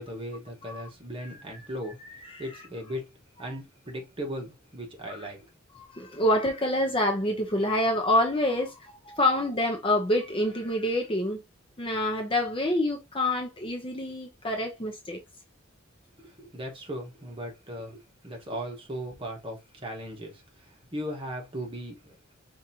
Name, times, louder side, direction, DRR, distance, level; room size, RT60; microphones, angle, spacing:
voice 1, 0.0-2.0 2.4-3.1 3.4-5.5 16.2-22.1, equal, 25° right, 1.2 m, -37 dB
voice 2, 5.8-11.4 11.8-15.2, left 1 dB, 25° left, 0.7 m, -27 dB
5.2 x 2.6 x 2.7 m
head